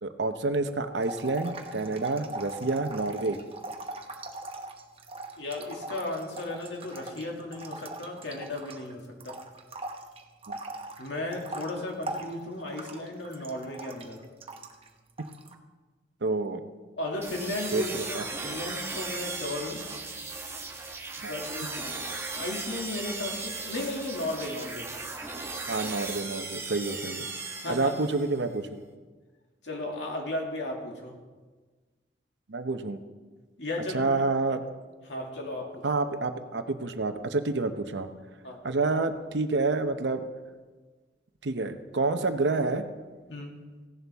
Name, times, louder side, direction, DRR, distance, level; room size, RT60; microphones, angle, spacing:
voice 1, 0.0-3.4 10.5-10.6 16.2-16.6 17.7-18.2 21.2-21.3 25.7-27.2 27.7-28.8 32.5-33.0 33.9-34.6 35.8-38.1 38.6-40.3 41.4-42.8, right 3 dB, 80° right, 9 dB, 0.8 m, -28 dB
sound 1, 1.0-8.9 9.2-14.9 15.2-15.5, right 2 dB, 35° right, 0.9 m, -40 dB
voice 2, 5.4-9.4 11.0-14.2 17.0-19.8 21.2-22.1 22.4-24.9 27.6-27.9 29.6-31.2 33.6-34.1 35.1-35.9 38.4-38.6 43.3-43.5, left 2 dB, 80° left, 0 dB, 2.4 m, -35 dB
sound 2, 17.2-28.4, right 3 dB, 15° right, 1.2 m, -37 dB
16.5 x 11.0 x 3.5 m, 1.3 s
head